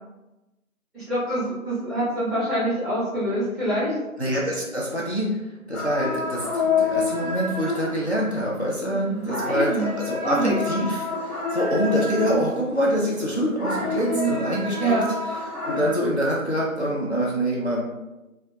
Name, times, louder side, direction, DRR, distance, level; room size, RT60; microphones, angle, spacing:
voice 1, 0.9-4.0 8.8-9.9 10.2-10.5 12.2-12.5 14.1-15.1, right 2 dB, ahead, -13 dB, 0.8 m, -26 dB
voice 2, 4.2-5.4 5.7-15.0 15.6-17.8, equal, 50° left, -4 dB, 0.5 m, -25 dB
sound 1, 5.7-12.8 13.2-15.9, left 4 dB, 85° left, 1.0 m, -28 dB
4.2 x 2.2 x 2.3 m, 1.0 s
figure-of-eight pair, 180°, 43 cm